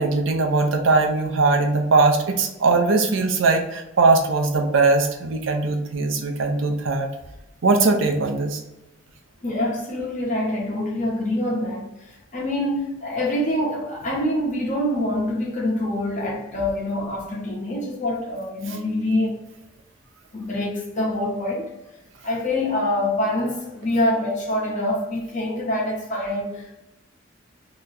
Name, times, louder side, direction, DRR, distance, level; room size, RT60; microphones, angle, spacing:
voice 1, 0.0-7.1 7.6-8.6, right 3 dB, 80° right, 0.6 m, -20 dB
voice 2, 9.4-19.4 20.3-21.7 22.2-26.7, left 1 dB, 40° left, 1.1 m, -25 dB
2.9 x 2.3 x 3.9 m
head